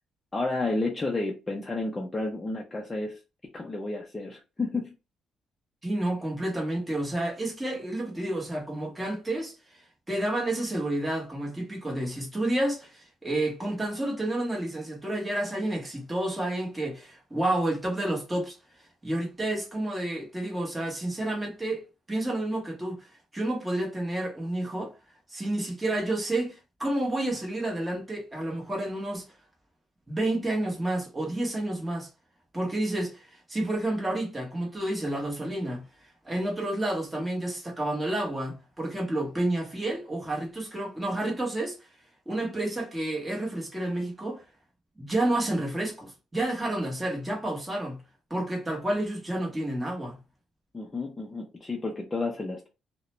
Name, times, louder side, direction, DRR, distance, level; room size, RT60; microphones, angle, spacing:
voice 1, 0.3-3.2 3.5-4.9 50.7-52.7, left 2 dB, 20° left, 0.5 m, -31 dB
voice 2, 5.8-9.8 10.1-18.6 19.0-23.1 23.3-24.9 25.3-29.3 30.1-32.1 32.5-41.8 42.3-44.4 45.0-48.0 48.3-50.2, right 1 dB, 15° right, 1.1 m, -30 dB
2.3 x 2.1 x 3.0 m
cardioid pair, 110°, 0 cm